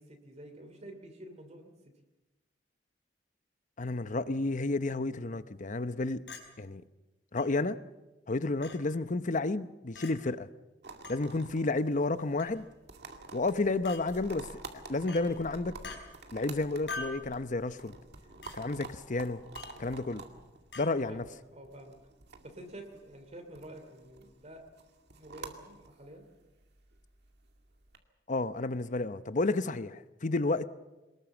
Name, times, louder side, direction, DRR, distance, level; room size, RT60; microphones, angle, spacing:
voice 1, 0.0-1.7 21.1-22.0 22.4-24.7 25.2-26.2, right 1 dB, 40° right, 2.9 m, -49 dB
voice 2, 3.8-6.2 6.6-6.8 7.3-7.8 8.3-10.5 11.1-12.7 13.3-14.5 14.9-15.8 16.3-17.9 18.5-19.4 19.8-20.2 20.8-21.2 28.3-30.7, left 2 dB, 45° left, 0.8 m, -31 dB
Chink clink, 6.3-6.5 7.4-7.5 8.6-8.8 10.0-10.1 11.0-11.2 12.4-12.6 13.8-14.0 15.1-15.3 15.8-16.0 16.9-17.2 18.4-18.6 19.5-19.8 20.7-20.9, left 3 dB, 75° left, 4.6 m, -42 dB
sound 1, 10.8-28.0, right 3 dB, 65° right, 2.3 m, -50 dB
23.0 x 20.0 x 7.2 m
head